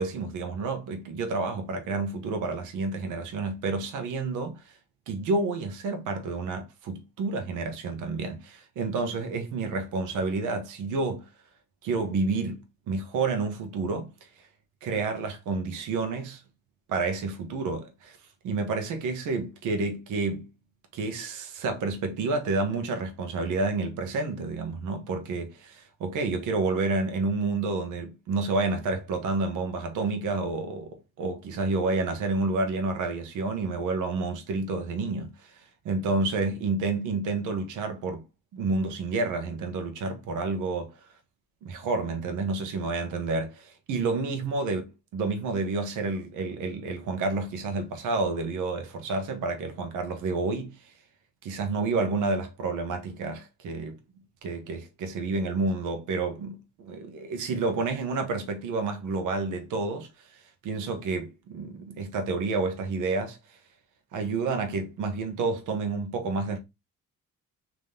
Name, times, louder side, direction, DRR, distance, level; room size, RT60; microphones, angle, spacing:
voice 1, 0.0-4.7 5.1-11.3 11.8-14.1 14.8-16.4 16.9-18.2 18.4-20.5 20.9-38.2 38.5-40.9 41.6-44.8 45.1-50.9 51.4-54.0 54.4-60.4 60.6-63.6 64.1-66.6, right 3 dB, 85° right, 1.1 m, -29 dB
3.7 x 3.0 x 3.7 m
cardioid pair, 90°, 30 cm